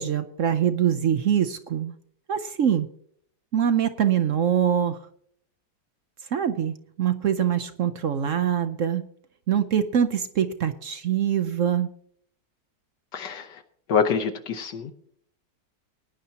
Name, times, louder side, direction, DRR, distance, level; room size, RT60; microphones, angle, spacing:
voice 1, 0.0-1.9 2.3-2.9 3.5-5.0 6.3-9.0 9.5-11.9, right 9 dB, 65° right, 10 dB, 0.8 m, -24 dB
voice 2, 13.1-13.6 13.9-14.9, left 6 dB, 75° left, 6 dB, 1.5 m, -26 dB
19.0 x 10.5 x 2.8 m, 0.65 s
omnidirectional pair, 2.0 m